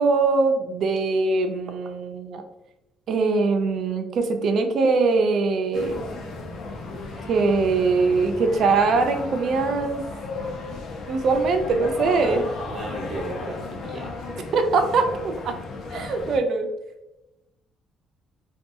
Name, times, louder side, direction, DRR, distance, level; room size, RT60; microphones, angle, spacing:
voice 1, 0.0-2.4 3.1-6.0 7.3-10.0 11.1-12.4 14.5-15.6 15.9-16.7, right 4 dB, 60° right, 6 dB, 0.4 m, -22 dB
sound 1, 5.7-16.4, left 3 dB, 70° left, 0.5 m, -35 dB
voice 2, 12.7-14.1, right 1 dB, 40° right, -4 dB, 0.8 m, -34 dB
2.5 x 2.3 x 2.6 m, 0.93 s
cardioid pair, 110°, 0 cm